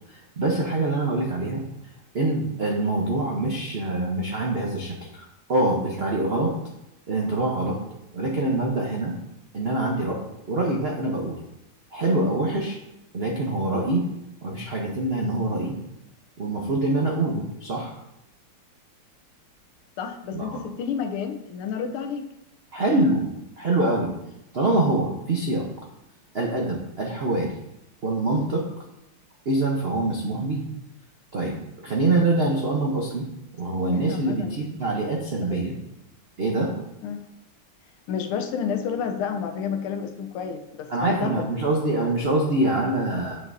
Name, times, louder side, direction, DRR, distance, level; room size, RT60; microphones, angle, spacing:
voice 1, 0.1-1.6 2.1-6.5 7.1-7.8 8.1-9.1 9.5-11.4 11.9-12.8 13.1-14.0 14.4-15.7 16.4-17.9 20.3-20.6 22.7-23.3 23.6-24.1 24.5-25.7 26.3-27.5 28.0-28.6 29.4-30.6 31.3-33.3 33.6-35.7 36.4-36.7 40.9-43.4, right 2 dB, 70° right, -1 dB, 0.5 m, -25 dB
voice 2, 20.0-22.3 33.9-34.6 35.5-35.6 37.0-37.2 38.1-41.5, left 7 dB, 85° left, 5 dB, 1.6 m, -30 dB
9.6 x 5.4 x 2.6 m, 0.86 s
omnidirectional pair, 2.4 m